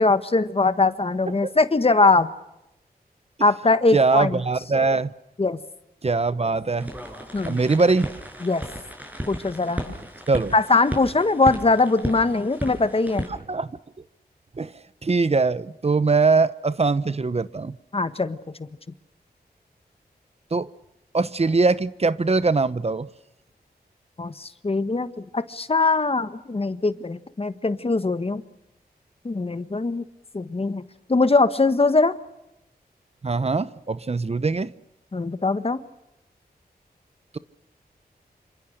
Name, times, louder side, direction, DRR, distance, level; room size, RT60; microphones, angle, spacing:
voice 1, 0.0-2.3 3.4-4.4 5.4-5.6 7.3-7.6 8.4-8.6 9.3-9.9 10.5-13.3 17.9-18.4 24.2-28.4 29.2-30.0 30.3-30.8 31.1-32.2 35.1-35.8, left 3 dB, 35° left, 11 dB, 1.5 m, -21 dB
voice 2, 3.9-5.1 6.0-6.9 7.4-8.1 10.3-10.5 13.5-13.7 14.6-14.7 15.0-17.7 20.5-20.7 21.1-23.1 33.2-34.7, right 3 dB, 40° right, 15 dB, 0.9 m, -22 dB
sound 1, 6.8-13.3, equal, 10° right, 6.8 m, -34 dB
27.5 x 26.0 x 6.7 m, 0.88 s
wide cardioid pair, 70°, 16 cm